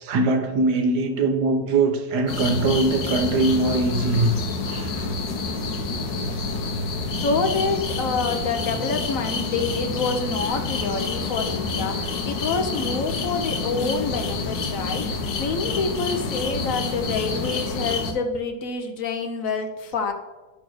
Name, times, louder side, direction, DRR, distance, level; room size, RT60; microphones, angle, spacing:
voice 1, 0.0-4.3 4.7-5.1, right 3 dB, 65° right, 6 dB, 1.3 m, -22 dB
sound 1, 2.3-18.1, left 3 dB, 80° left, 1.6 m, -28 dB
voice 2, 7.2-20.1, left 4 dB, 60° left, 6 dB, 1.0 m, -27 dB
10.0 x 3.9 x 6.2 m, 1.1 s
omnidirectional pair, 2.0 m